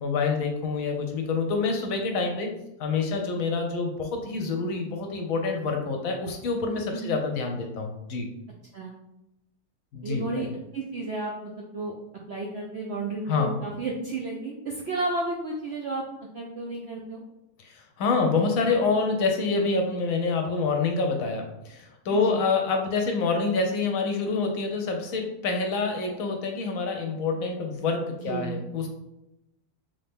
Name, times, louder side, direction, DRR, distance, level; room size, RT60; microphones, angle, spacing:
voice 1, 0.0-2.5 2.8-8.3 9.9-10.5 13.3-13.6 17.6-28.9, left 4 dB, 70° left, 3 dB, 1.0 m, -27 dB
voice 2, 10.0-10.5 10.7-11.9 12.3-16.0 16.3-17.2 22.1-22.4 28.2-28.6, right 2 dB, 70° right, -2 dB, 0.6 m, -32 dB
3.3 x 2.8 x 3.4 m, 0.88 s
omnidirectional pair, 1.6 m